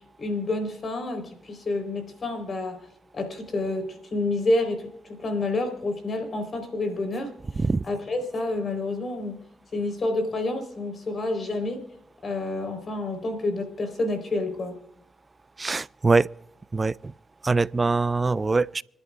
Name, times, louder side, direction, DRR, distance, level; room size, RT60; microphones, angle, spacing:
voice 1, 0.2-2.8 3.1-7.3 7.9-9.4 9.7-11.8 12.2-14.8, left 2 dB, 55° left, 4.2 m, -28 dB
voice 2, 15.6-16.3 16.7-17.1 17.4-18.8, right 3 dB, 35° right, 0.4 m, -23 dB
26.0 x 11.0 x 2.5 m
supercardioid pair, 50°, 0 cm